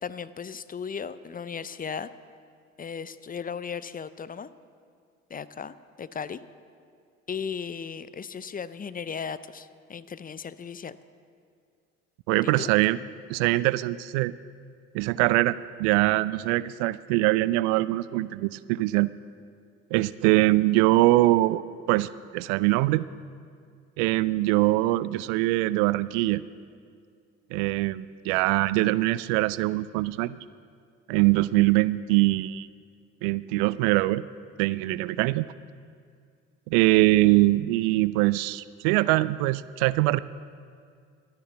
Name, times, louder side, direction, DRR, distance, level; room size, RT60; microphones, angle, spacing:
voice 1, 0.0-2.1 2.8-4.5 5.3-6.4 7.3-11.0 12.4-12.7, left 6 dB, 25° left, 15 dB, 0.5 m, -36 dB
voice 2, 12.3-13.0 13.3-14.3 14.9-19.1 19.9-23.0 24.0-26.4 27.5-30.4 31.1-32.7 33.2-34.2 34.6-35.5 36.7-40.2, right 18 dB, 70° right, 18 dB, 0.5 m, -23 dB
13.0 x 9.9 x 7.0 m, 2.2 s
hypercardioid pair, 60°, 37 cm